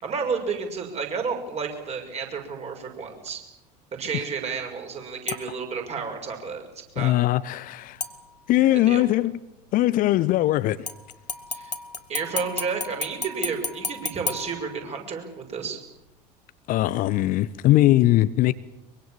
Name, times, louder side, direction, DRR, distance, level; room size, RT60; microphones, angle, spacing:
voice 1, 0.0-3.4 4.0-6.6 6.9-7.1 8.7-9.0 11.5-11.8 12.1-15.8, right 5 dB, 30° right, 6.6 m, -31 dB
sound 1, 5.3-5.7 8.0-8.7 10.9-15.2 15.7-15.8, left 3 dB, 85° left, 1.6 m, -34 dB
voice 2, 7.0-8.0 8.5-9.3 9.7-10.9 16.7-18.5, left 15 dB, 40° left, 0.9 m, -20 dB
24.5 x 23.5 x 7.6 m
figure-of-eight pair, 70°, 21 cm